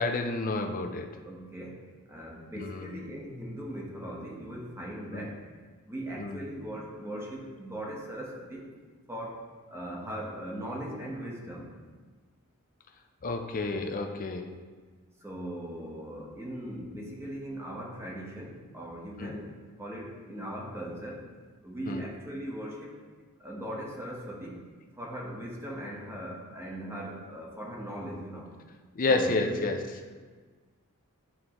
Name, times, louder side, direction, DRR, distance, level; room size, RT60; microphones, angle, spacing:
voice 1, 0.0-1.1 2.5-3.0 5.1-5.3 6.2-6.4 13.2-14.5 19.2-19.4 21.9-22.0 28.9-29.8, left 3 dB, 40° left, 5 dB, 0.5 m, -30 dB
voice 2, 1.2-1.8 2.1-5.5 5.9-8.7 9.1-11.7 15.2-19.5 19.8-21.3 21.6-23.0 23.4-24.6 25.0-28.5 29.1-29.7, right 1 dB, 10° right, -3 dB, 1.0 m, -39 dB
9.5 x 3.8 x 3.0 m, 1.4 s
head